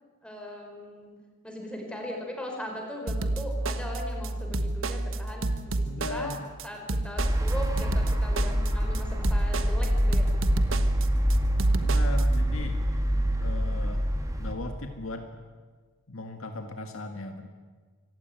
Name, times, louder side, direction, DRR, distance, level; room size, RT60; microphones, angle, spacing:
voice 1, 0.2-1.1 1.4-6.3 6.6-10.3, left 1 dB, 5° left, 1 dB, 5.2 m, -39 dB
sound 1, 3.1-12.2, right 2 dB, 70° right, 1.3 m, -30 dB
voice 2, 5.8-6.6 6.9-7.1 11.8-12.8 13.4-14.0 14.4-15.3 16.1-17.5, left 2 dB, 80° left, 5 dB, 1.8 m, -37 dB
sound 2, 7.2-14.5, equal, 15° right, 2.6 m, -25 dB
25.5 x 16.0 x 9.4 m, 1.5 s
head